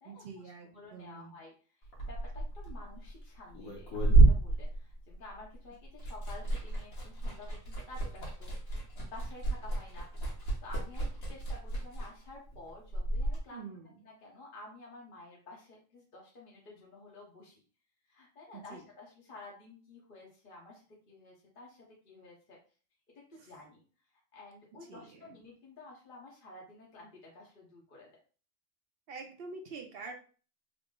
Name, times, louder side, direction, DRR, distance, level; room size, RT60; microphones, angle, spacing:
voice 1, 0.0-1.4 13.5-14.0 18.5-18.8 23.3-23.5 24.9-25.4 29.1-30.1, right 4 dB, 60° right, 4 dB, 0.7 m, -46 dB
voice 2, 0.7-1.5 2.0-8.5 8.9-13.7 14.0-17.6 18.1-21.8 22.0-22.6 23.3-23.8 24.3-28.1, left 2 dB, 45° left, -3 dB, 0.9 m, -51 dB
Liquid, 1.8-5.5 5.8-13.4, right 3 dB, 90° left, 1.6 m, -29 dB
3.8 x 2.0 x 3.6 m, 0.39 s
omnidirectional pair, 1.4 m